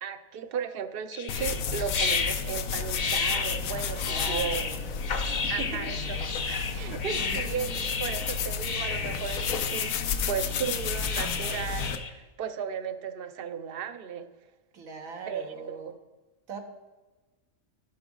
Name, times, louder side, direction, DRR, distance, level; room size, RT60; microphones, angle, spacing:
voice 1, 0.0-4.6 5.5-6.2 6.5-7.7 8.0-10.0 10.3-14.3 15.3-15.8, right 7 dB, 55° right, 10 dB, 0.7 m, -35 dB
sound 1, 1.1-12.1, left 5 dB, 45° left, 0.7 m, -33 dB
sound 2, 1.3-12.0, left 6 dB, 90° left, 1.1 m, -32 dB
voice 2, 4.1-4.8 5.2-6.3 7.1-7.9 14.7-15.9 16.5-16.6, right 4 dB, 85° right, 3 dB, 1.5 m, -40 dB
16.0 x 6.0 x 3.8 m, 1.2 s
omnidirectional pair, 1.4 m